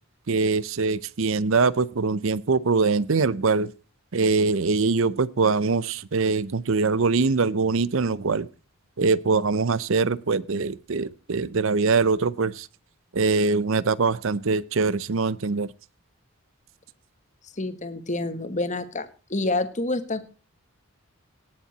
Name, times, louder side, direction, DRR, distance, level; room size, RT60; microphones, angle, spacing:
voice 1, 0.3-3.7 4.1-8.5 9.0-12.7 13.1-15.7, right 4 dB, 60° right, 0.6 m, -23 dB
voice 2, 17.4-20.2, left 2 dB, 35° left, 1.3 m, -28 dB
18.5 x 7.3 x 4.0 m
head